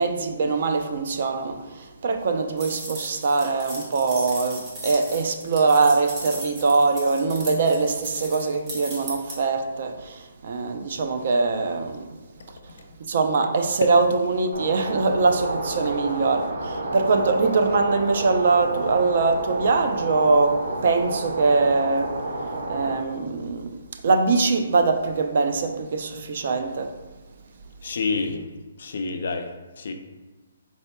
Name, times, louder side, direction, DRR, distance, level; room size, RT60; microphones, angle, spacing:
voice 1, 0.0-12.1 13.1-22.2 22.7-26.9, right 3 dB, 50° right, 0.4 m, -22 dB
sound 1, 2.6-9.4, right 2 dB, 20° right, 0.8 m, -37 dB
sound 2, 14.5-22.9, right 2 dB, 90° right, 0.7 m, -30 dB
voice 2, 27.8-28.4 28.8-29.5 29.8-29.9, left 4 dB, 60° left, 0.4 m, -27 dB
4.1 x 3.5 x 2.2 m
hypercardioid pair, 170°, 0 cm